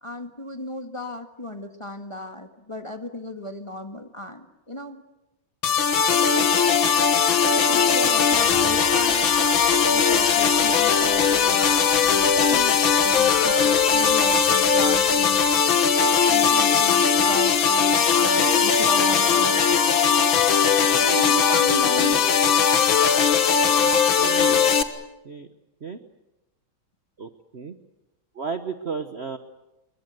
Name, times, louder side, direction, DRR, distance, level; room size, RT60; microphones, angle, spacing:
voice 1, 0.0-5.0 6.1-6.7 7.7-9.3 9.9-15.5 16.3-20.4 21.0-22.2, left 1 dB, 15° left, 5 dB, 1.6 m, -35 dB
sound 1, 5.6-24.8, left 6 dB, 70° left, 2.2 m, -19 dB
Bird vocalization bird call bird song, 8.3-15.6, equal, 10° right, 4.0 m, -40 dB
voice 2, 24.2-24.7 25.2-25.5 25.8-26.0 27.2-27.7 28.3-29.4, right 5 dB, 40° right, 8 dB, 1.1 m, -33 dB
27.0 x 23.0 x 8.0 m, 0.96 s
omnidirectional pair, 2.3 m